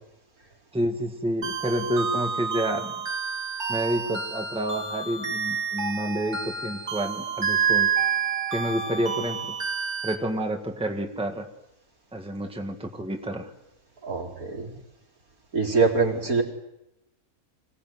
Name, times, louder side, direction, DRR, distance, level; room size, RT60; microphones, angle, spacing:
voice 1, 0.7-2.9 3.7-7.9 8.5-9.6 10.0-11.5 12.1-13.5, right 1 dB, 5° right, 4 dB, 1.7 m, -29 dB
sound 1, 1.4-10.1, right 6 dB, 50° right, 2.7 m, -29 dB
voice 2, 14.0-14.8 15.5-16.4, right 4 dB, 80° right, -1 dB, 4.6 m, -24 dB
25.0 x 18.0 x 9.4 m, 0.89 s
omnidirectional pair, 1.5 m